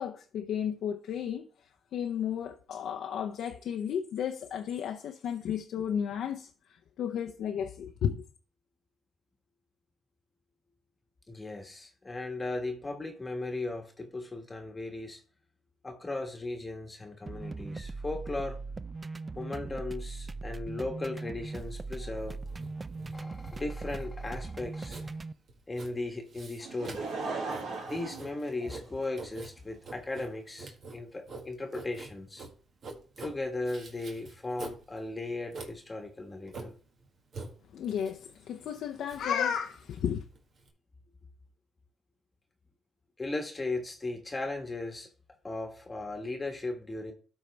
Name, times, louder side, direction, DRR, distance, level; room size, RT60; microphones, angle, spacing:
voice 1, 0.0-1.5 1.9-6.5 7.0-8.2 37.7-40.2, left 8 dB, 75° left, 0.6 m, -33 dB
voice 2, 11.3-15.2 15.8-18.6 19.4-22.4 23.1-25.1 25.7-27.1 27.8-32.5 33.2-36.7 43.2-45.1 45.4-47.1, left 2 dB, 20° left, 1.3 m, -37 dB
sound 1, 17.3-25.3, right 3 dB, 25° right, 0.4 m, -39 dB
Writing, 21.5-40.7, right 3 dB, 55° right, 1.7 m, -47 dB
Laughter / Crowd, 26.6-29.2 29.9-30.0, right 3 dB, 80° right, 2.3 m, -37 dB
12.5 x 4.6 x 3.3 m
cardioid pair, 90°, 0 cm